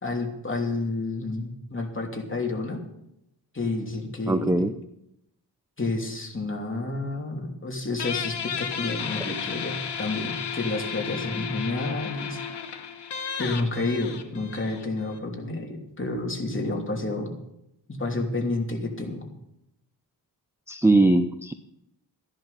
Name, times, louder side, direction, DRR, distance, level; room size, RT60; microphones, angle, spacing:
voice 1, 0.0-2.8 3.5-4.7 5.8-12.4 13.4-17.3 17.9-19.2, left 2 dB, 30° left, 1 dB, 3.0 m, -30 dB
voice 2, 4.3-4.7 20.7-21.5, right 2 dB, 5° right, 10 dB, 0.6 m, -20 dB
Guitar, 8.0-15.2, left 7 dB, 80° left, 1.4 m, -33 dB
15.0 x 10.5 x 5.7 m, 0.83 s
wide cardioid pair, 95°, 41 cm